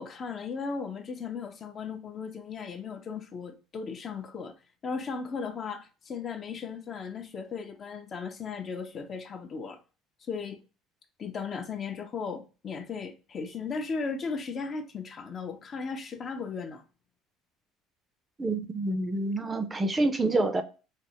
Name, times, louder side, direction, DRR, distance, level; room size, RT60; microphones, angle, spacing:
voice 1, 0.0-4.5 4.8-9.8 10.3-10.6 11.2-16.8, left 5 dB, 40° left, 0.6 m, -36 dB
voice 2, 18.4-20.6, right 2 dB, 20° right, 0.5 m, -27 dB
3.3 x 2.0 x 2.8 m
supercardioid pair, 90°, 0 cm